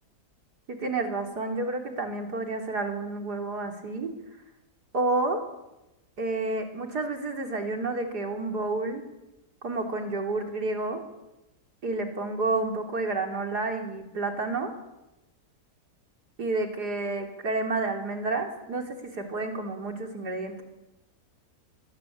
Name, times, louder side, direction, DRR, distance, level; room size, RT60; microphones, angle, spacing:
voice 1, 0.7-4.1 4.9-5.4 6.2-9.0 9.6-11.0 11.8-14.7 16.4-20.6, right 3 dB, 75° right, 4 dB, 4.1 m, -30 dB
24.0 x 23.0 x 8.7 m, 0.95 s
omnidirectional pair, 1.7 m